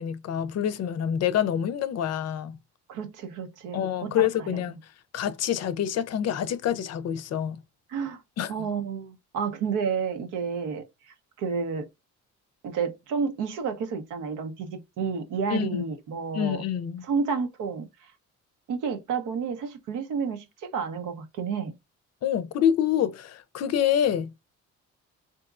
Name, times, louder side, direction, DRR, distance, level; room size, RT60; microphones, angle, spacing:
voice 1, 0.0-2.6 3.7-4.8 5.1-7.6 8.4-8.5 15.5-15.9 16.3-17.1 22.2-24.3, left 9 dB, 55° left, 0.5 m, -26 dB
voice 2, 2.9-4.6 7.9-8.2 8.5-11.9 12.6-16.6 17.0-17.9 18.7-21.7, right 5 dB, 85° right, 0.8 m, -31 dB
3.6 x 2.7 x 2.3 m
cardioid pair, 90°, 30 cm